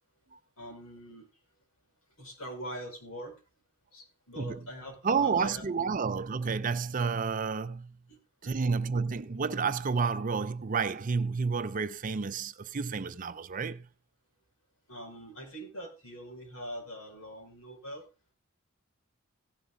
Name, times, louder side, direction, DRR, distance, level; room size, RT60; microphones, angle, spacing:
voice 1, 0.6-1.3 2.2-3.3 3.9-5.6 8.1-8.6 14.9-18.0, equal, 85° left, 5.4 m, -43 dB
voice 2, 5.0-8.0 8.4-13.9, right 5 dB, 40° right, 0.5 m, -30 dB
16.5 x 7.3 x 3.8 m
head